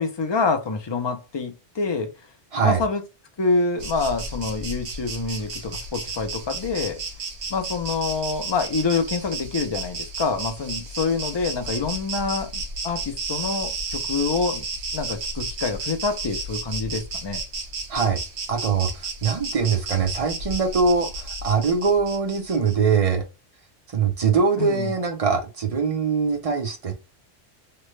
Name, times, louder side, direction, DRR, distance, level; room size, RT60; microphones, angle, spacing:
voice 1, 0.0-2.1 2.6-3.0 3.4-7.0 7.5-14.6 14.9-17.4 24.6-24.9, left 4 dB, 40° left, 0.3 m, -26 dB
Insect, 3.8-23.0, right 3 dB, 80° right, 1.2 m, -33 dB
voice 2, 18.5-23.2 23.9-26.9, right 5 dB, 45° right, 0.5 m, -22 dB
3.2 x 2.1 x 3.1 m
omnidirectional pair, 1.3 m